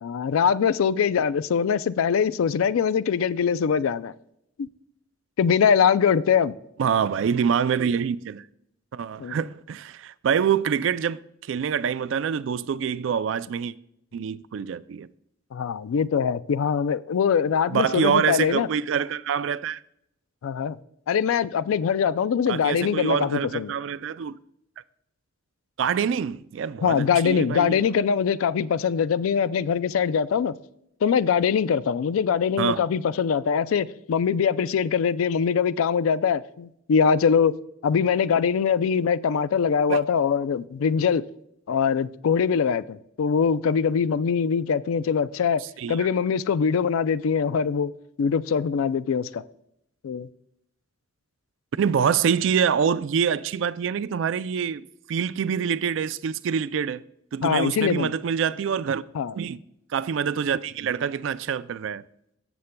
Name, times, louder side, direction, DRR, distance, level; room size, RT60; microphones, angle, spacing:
voice 1, 0.0-4.1 4.6-4.7 5.4-6.6 9.2-9.4 15.5-18.7 20.4-20.8 21.1-23.7 26.8-30.5 31.0-37.5 37.8-41.2 41.7-45.6 45.9-47.9 48.2-49.4 50.0-50.3 57.4-58.1 59.1-59.3, left 6 dB, 85° left, 0.3 m, -23 dB
voice 2, 6.8-8.4 8.9-13.7 14.1-15.1 17.7-19.8 22.5-24.4 25.8-28.0 32.6-32.8 39.9-40.0 45.8-46.1 51.8-57.0 57.3-59.0 59.3-59.6 59.9-62.0, right 7 dB, 65° right, 0.3 m, -25 dB
14.0 x 7.0 x 2.2 m
head